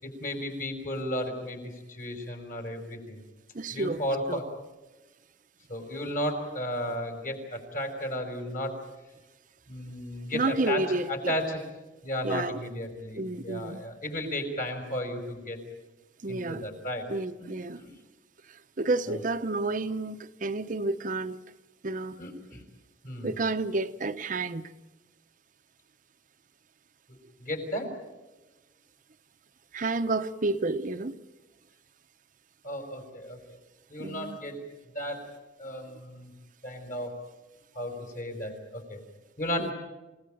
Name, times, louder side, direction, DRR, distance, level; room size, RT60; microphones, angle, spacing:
voice 1, 0.0-3.2 3.7-4.5 5.7-8.8 9.7-11.6 12.0-15.6 16.3-17.1 17.4-17.9 19.1-19.2 22.2-22.6 23.0-23.3 27.4-27.9 32.6-33.4 33.9-34.6 34.9-35.3 35.6-36.3 36.6-37.2 37.7-39.0 39.4-39.7, equal, 45° left, 5.5 m, -34 dB
voice 2, 3.5-4.0 4.3-4.4 10.3-11.4 12.2-12.6 13.2-13.8 16.2-16.7 17.1-17.8 18.5-21.4 21.8-22.2 23.2-24.7 29.7-31.2 34.0-34.4 39.6-39.7, right 2 dB, 45° right, 0.8 m, -30 dB
28.5 x 17.5 x 9.1 m
head